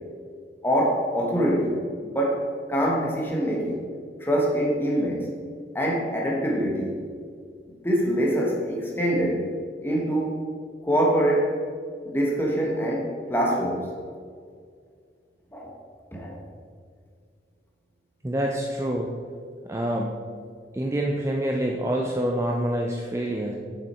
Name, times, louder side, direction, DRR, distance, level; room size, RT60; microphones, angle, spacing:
voice 1, 0.6-3.8 4.2-5.3 5.7-7.0 7.8-9.5 9.8-10.4 10.8-11.5 12.0-13.9 15.5-15.7 16.1-16.4, equal, 15° left, -2 dB, 1.2 m, -24 dB
voice 2, 18.2-19.1 19.7-20.2 20.7-23.5, right 1 dB, 15° right, 0 dB, 0.4 m, -26 dB
6.5 x 6.2 x 4.3 m, 2.1 s
head